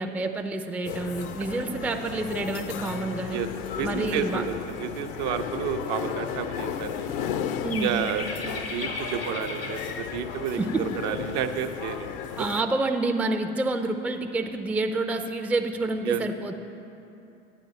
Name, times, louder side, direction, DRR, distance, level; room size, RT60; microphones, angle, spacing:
voice 1, 0.0-3.4 3.8-4.4 7.6-8.1 10.6-10.9 12.4-16.5, right 2 dB, 5° right, 5 dB, 0.4 m, -28 dB
sound 1, 0.8-12.6, left 8 dB, 55° left, 0.6 m, -34 dB
voice 2, 3.7-7.0 7.8-12.1 16.1-16.2, right 8 dB, 55° right, 6 dB, 0.6 m, -31 dB
sound 2, 7.5-9.9 10.9-11.8 12.6-13.1, left 3 dB, 85° left, 1.7 m, -37 dB
11.0 x 9.2 x 4.2 m, 2.8 s
figure-of-eight pair, 75°, 29 cm